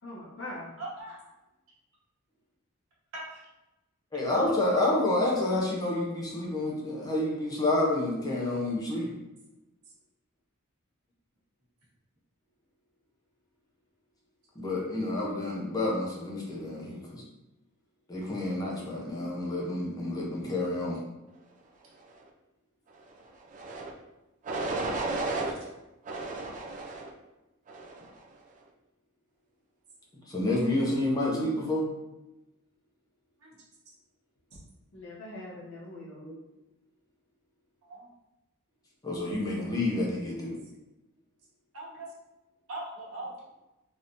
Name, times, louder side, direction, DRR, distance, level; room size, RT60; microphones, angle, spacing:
voice 1, 0.0-0.7 34.9-36.3, left 1 dB, 55° left, -5 dB, 1.0 m, -42 dB
voice 2, 0.8-1.2 3.1-3.4 8.9-9.1 25.4-25.5 33.4-33.6 37.8-38.1 41.7-42.1 42.7-43.3, right 2 dB, 75° right, -5 dB, 1.1 m, -40 dB
voice 3, 4.1-9.1 14.6-17.2 18.1-21.0 30.3-31.9 39.0-40.6, left 2 dB, 15° left, -3 dB, 0.5 m, -29 dB
sound 1, 23.5-23.9 24.4-25.5 26.1-27.1 27.7-28.1, right 2 dB, 35° right, 0.3 m, -33 dB
3.4 x 2.7 x 2.5 m, 0.99 s
head